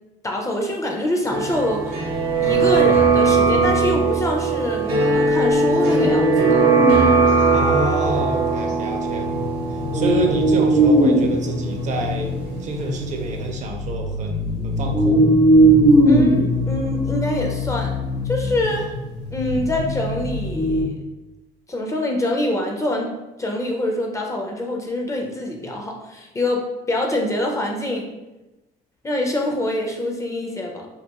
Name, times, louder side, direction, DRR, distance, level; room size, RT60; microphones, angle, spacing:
voice 1, 0.2-2.0 2.4-6.6 16.1-17.9 18.3-18.9 19.3-21.0 21.7-28.1 29.0-30.9, left 1 dB, 20° left, 1 dB, 0.4 m, -25 dB
sound 1, 1.3-13.0 13.3-13.4, right 4 dB, 75° right, 0.7 m, -20 dB
sound 2, 2.1-3.9 5.6-7.1 7.4-7.5 8.0-8.5 9.0-20.8, right 1 dB, 90° left, 0.9 m, -20 dB
voice 2, 7.5-9.3 9.9-12.3 12.6-15.3 18.8-18.9, right 2 dB, 45° right, 2 dB, 0.4 m, -27 dB
2.5 x 2.3 x 2.8 m, 1.0 s
cardioid pair, 110°, 17 cm